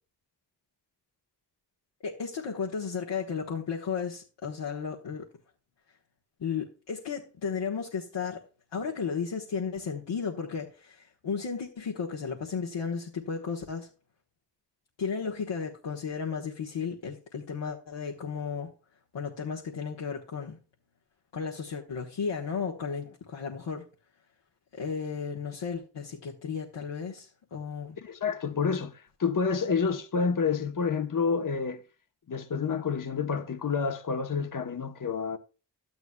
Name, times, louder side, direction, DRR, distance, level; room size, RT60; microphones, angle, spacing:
voice 1, 2.0-5.3 6.4-8.4 8.7-13.9 15.0-18.7 19.1-20.6 21.3-23.9 24.7-28.0, left 6 dB, 85° left, 1.4 m, -34 dB
voice 2, 28.0-31.8 32.3-35.4, left 5 dB, 50° left, 1.1 m, -29 dB
12.0 x 10.5 x 2.3 m
cardioid pair, 45°, 42 cm